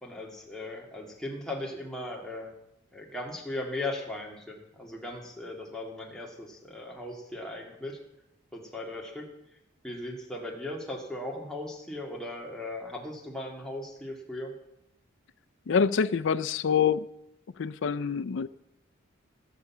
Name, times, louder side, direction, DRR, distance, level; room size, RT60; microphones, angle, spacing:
voice 1, 0.0-2.5 2.9-8.0 8.5-9.3 9.8-14.5, left 1 dB, 5° left, 2.1 m, -38 dB
voice 2, 15.7-17.1 17.6-18.5, left 6 dB, 65° left, 0.4 m, -26 dB
17.5 x 6.8 x 7.1 m
head